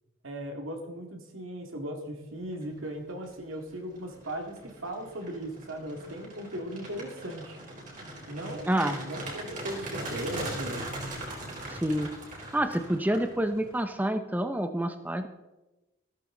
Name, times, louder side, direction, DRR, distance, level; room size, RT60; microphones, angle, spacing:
voice 1, 0.2-7.6 8.3-10.9, right 1 dB, 85° right, 3 dB, 2.3 m, -38 dB
sound 1, 3.0-3.3 3.7-13.8, right 1 dB, 40° right, 4.0 m, -40 dB
voice 2, 8.7-9.0 11.7-12.1 12.5-15.3, right 1 dB, 10° right, 7 dB, 0.6 m, -28 dB
15.0 x 14.0 x 3.9 m, 1.1 s
head